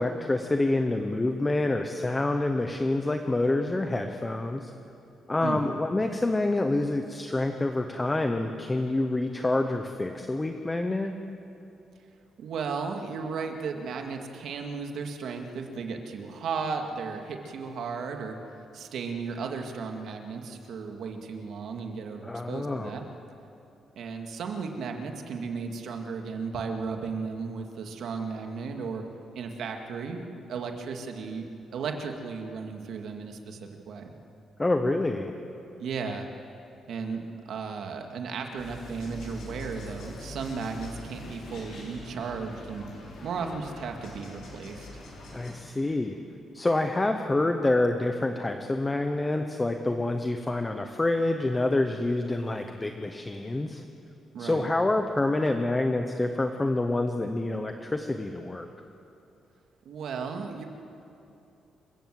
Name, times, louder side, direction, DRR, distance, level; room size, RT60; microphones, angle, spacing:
voice 1, 0.0-4.7 5.3-11.1 22.2-22.9 34.6-35.3 45.3-46.2 46.5-53.8 54.4-58.7, left 2 dB, 10° left, 6 dB, 0.8 m, -27 dB
voice 2, 5.4-5.7 12.4-18.4 18.7-23.0 24.0-29.0 29.3-34.1 35.8-36.3 36.9-42.9 43.2-44.9 54.3-54.7 59.9-60.6, right 5 dB, 60° right, 4 dB, 2.1 m, -35 dB
sound 1, 38.6-45.5, left 2 dB, 65° left, 6.3 m, -43 dB
27.5 x 15.5 x 7.7 m, 2.8 s
cardioid pair, 180°, 0 cm